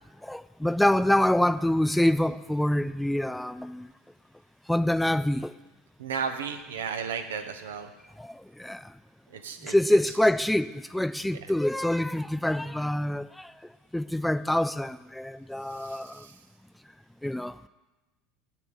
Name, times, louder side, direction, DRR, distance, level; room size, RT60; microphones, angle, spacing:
voice 1, 0.2-3.9 4.7-5.5 6.7-6.8 8.2-8.9 9.6-13.5 13.9-16.3 17.2-17.6, left 1 dB, 5° left, 0.3 m, -26 dB
voice 2, 6.0-7.9 9.3-9.7 15.8-16.3, right 6 dB, 80° right, 0.9 m, -34 dB
8.1 x 7.0 x 7.3 m
hypercardioid pair, 80°, 0 cm